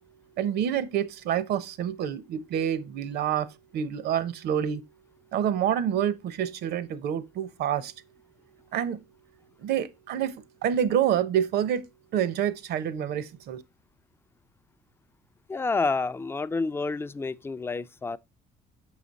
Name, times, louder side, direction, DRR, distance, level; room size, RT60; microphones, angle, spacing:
voice 1, 0.4-4.8 5.3-7.9 8.7-9.0 9.6-10.3 10.6-11.8 12.1-13.6, right 9 dB, 70° right, 0.8 m, -27 dB
voice 2, 15.5-18.2, left 3 dB, 15° left, 0.3 m, -29 dB
6.7 x 5.0 x 4.0 m
cardioid pair, 110°, 17 cm